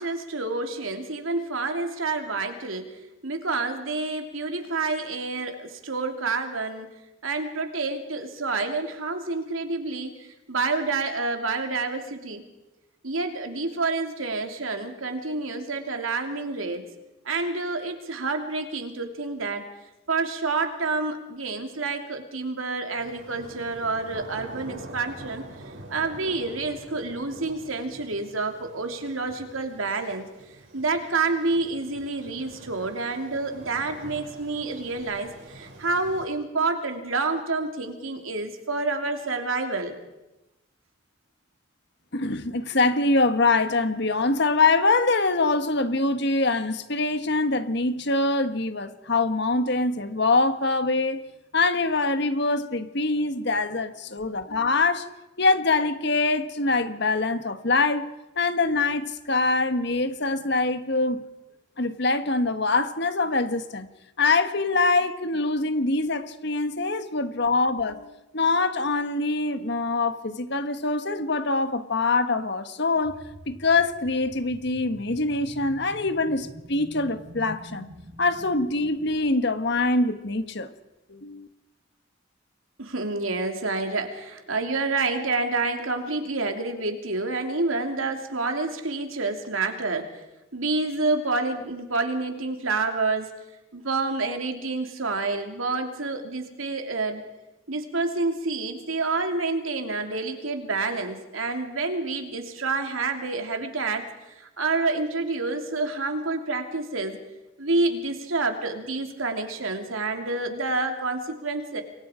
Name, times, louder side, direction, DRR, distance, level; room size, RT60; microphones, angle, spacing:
voice 1, 0.0-2.9 3.2-6.9 7.2-12.4 13.0-16.8 17.2-19.6 20.1-25.4 25.9-30.3 30.7-39.9 82.8-90.1 90.5-93.3 93.7-97.2 97.7-107.2 107.6-111.8, right 3 dB, 85° right, 3.0 m, -28 dB
sound 1, 22.9-36.3, right 1 dB, 65° right, 5.9 m, -45 dB
voice 2, 42.1-51.2 51.5-55.1 55.4-58.1 58.4-61.2 61.8-63.9 64.2-73.2 73.5-77.9 78.2-80.7 81.1-81.5, left 3 dB, 55° left, 1.5 m, -24 dB
sound 2, 73.0-79.2, equal, 50° right, 5.5 m, -45 dB
28.5 x 23.5 x 5.1 m
head